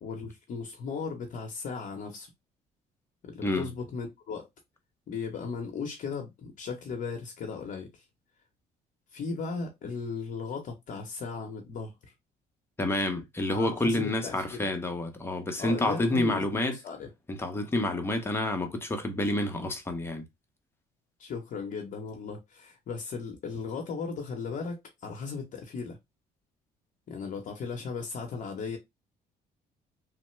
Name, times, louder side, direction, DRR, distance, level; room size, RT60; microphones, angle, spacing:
voice 1, 0.0-2.3 3.2-4.5 5.1-8.0 9.1-11.9 13.5-14.6 15.6-17.1 21.2-26.0 27.1-28.8, left 5 dB, 50° left, 0.8 m, -37 dB
voice 2, 12.8-16.8 17.3-20.3, left 1 dB, 15° left, 0.7 m, -29 dB
3.1 x 2.0 x 3.1 m
cardioid pair, 110°, 17 cm